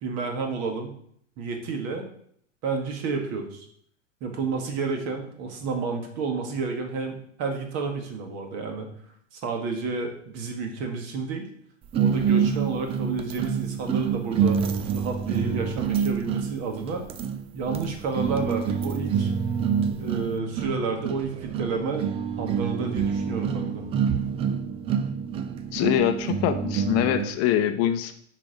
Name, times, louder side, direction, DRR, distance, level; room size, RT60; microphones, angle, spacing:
voice 1, 0.0-1.0 1.4-2.1 2.6-3.7 4.2-8.9 9.3-11.5 11.9-14.6 14.9-17.0 17.5-19.3 20.0-22.1 22.4-23.8, right 4 dB, 45° right, 3 dB, 1.8 m, -30 dB
sound 1, 11.9-27.4, right 7 dB, 15° right, 0.3 m, -27 dB
voice 2, 25.7-28.1, left 10 dB, 40° left, 8 dB, 0.8 m, -24 dB
7.0 x 4.7 x 5.0 m, 0.65 s
hypercardioid pair, 100°, 36 cm